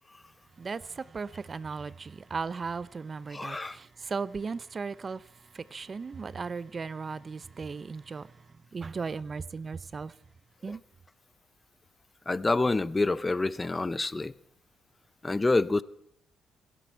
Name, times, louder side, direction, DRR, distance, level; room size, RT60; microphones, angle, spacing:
voice 1, 0.6-10.2 10.6-10.8, right 4 dB, 35° right, 0.6 m, -37 dB
voice 2, 3.3-3.8 10.7-10.8 12.3-14.3 15.2-15.8, left 3 dB, 20° left, 0.6 m, -27 dB
26.5 x 10.0 x 4.5 m
cardioid pair, 85°, 0 cm